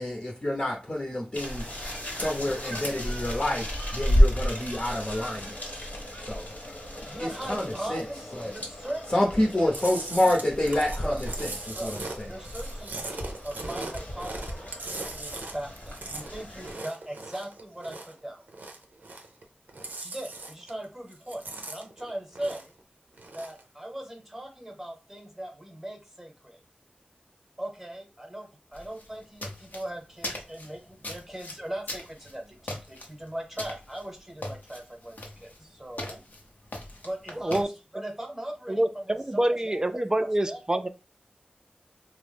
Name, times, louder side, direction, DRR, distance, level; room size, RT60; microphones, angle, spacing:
voice 1, 0.0-1.7 2.1-5.6 6.2-6.5 7.0-8.0 8.3-8.5 9.1-12.3, left 1 dB, 40° left, 0.8 m, -28 dB
sound 1, 1.3-16.8, equal, 60° left, 1.2 m, -32 dB
voice 2, 7.1-9.3 11.0-11.2 11.7-11.9 12.2-14.7 15.1-18.4 20.0-22.7 23.3-26.6 27.6-28.5 28.7-36.2 37.0-39.1 39.3-40.6, right 1 dB, 10° right, 0.9 m, -39 dB
Chewing mastication, 9.7-18.2 18.5-19.4 19.7-20.8 21.1-22.8 23.1-23.6, right 2 dB, 85° right, 0.5 m, -39 dB
sound 2, 28.7-37.6, left 1 dB, 80° left, 0.7 m, -41 dB
voice 3, 37.3-37.7 38.7-40.9, right 1 dB, 25° right, 0.3 m, -26 dB
2.9 x 2.1 x 3.3 m
wide cardioid pair, 55°, 3 cm